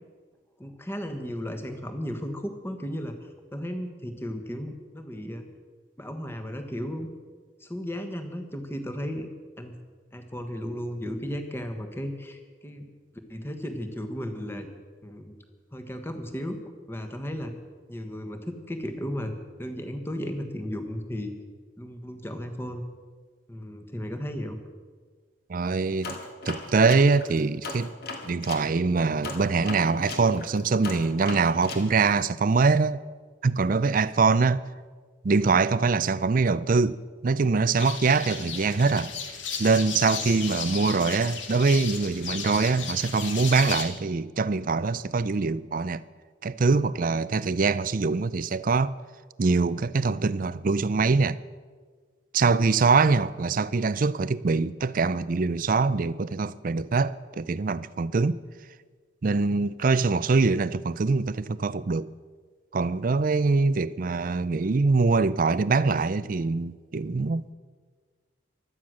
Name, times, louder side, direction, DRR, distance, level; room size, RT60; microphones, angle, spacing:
voice 1, 0.6-5.4 6.0-7.1 7.6-9.3 9.6-9.7 10.1-12.9 13.3-14.7 15.0-15.3 15.7-16.6 16.9-17.5 17.9-19.3 19.6-21.3 21.8-22.8 23.5-24.6, equal, 10° left, 1.3 m, -35 dB
voice 2, 25.5-26.2 26.5-27.9 28.2-33.0 33.4-34.7 35.2-39.1 39.6-46.0 46.4-48.9 49.4-51.4 52.3-58.4 59.2-62.1 62.7-67.5, right 4 dB, 45° right, 0.4 m, -23 dB
sound 1, 26.0-28.7 29.2-31.9, left 3 dB, 50° left, 1.9 m, -37 dB
sound 2, 37.8-43.8, left 6 dB, 70° left, 2.0 m, -34 dB
16.0 x 12.0 x 6.3 m
head